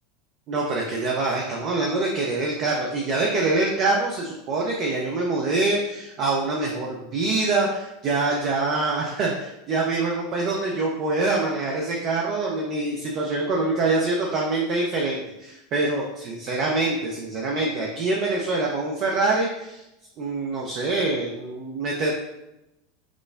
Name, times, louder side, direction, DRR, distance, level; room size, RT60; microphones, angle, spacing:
voice 1, 0.5-19.8 20.2-22.1, right 3 dB, 45° right, -2 dB, 0.5 m, -25 dB
6.0 x 2.0 x 2.3 m, 0.91 s
figure-of-eight pair, 80°, 0 cm